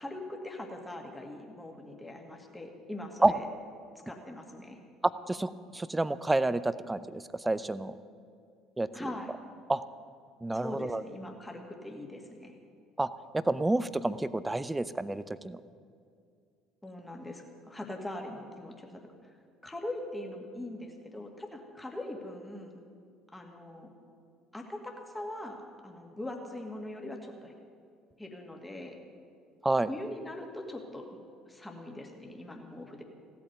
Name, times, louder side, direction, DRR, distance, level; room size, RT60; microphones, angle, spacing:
voice 1, 0.0-3.5 4.1-4.8 8.9-9.3 10.5-12.5 16.8-19.4 19.6-22.8 23.3-23.9 24.5-27.5 28.2-29.0 29.9-31.2 31.5-33.0, left 1 dB, 10° left, 2 dB, 2.2 m, -41 dB
voice 2, 5.0-7.9 8.8-8.9 9.7-9.8 10.4-11.0 13.0-13.1 13.3-15.6 29.6-29.9, right 2 dB, 10° right, 15 dB, 0.6 m, -29 dB
16.5 x 8.5 x 9.4 m, 2.3 s
figure-of-eight pair, 55°, 0 cm